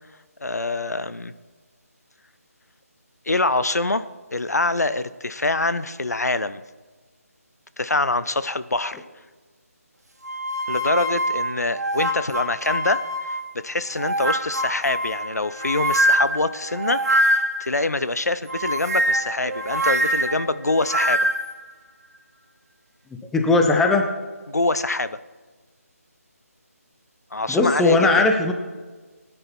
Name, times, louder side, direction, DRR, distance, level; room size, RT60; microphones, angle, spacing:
voice 1, 0.4-1.3 3.3-6.6 7.8-9.0 10.7-13.4 13.6-21.3 24.5-25.2 27.3-28.3, left 2 dB, 90° left, 14 dB, 0.8 m, -25 dB
sound 1, 10.2-13.5 14.0-17.7 18.5-21.5, right 1 dB, 90° right, 1.8 m, -24 dB
voice 2, 23.3-24.0 27.5-28.5, left 3 dB, 5° left, 3 dB, 0.6 m, -18 dB
17.5 x 10.0 x 4.3 m, 1.3 s
figure-of-eight pair, 160°, 8 cm